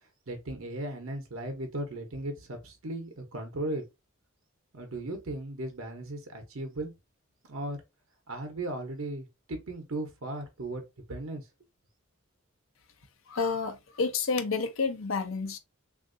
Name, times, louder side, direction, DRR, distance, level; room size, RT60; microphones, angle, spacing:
voice 1, 0.3-3.8 4.7-6.9 7.5-7.8 8.3-10.8 11.1-11.5, right 1 dB, 80° right, 0.8 m, -36 dB
voice 2, 13.3-15.6, left 4 dB, 75° left, 0.7 m, -30 dB
3.5 x 2.5 x 2.5 m
head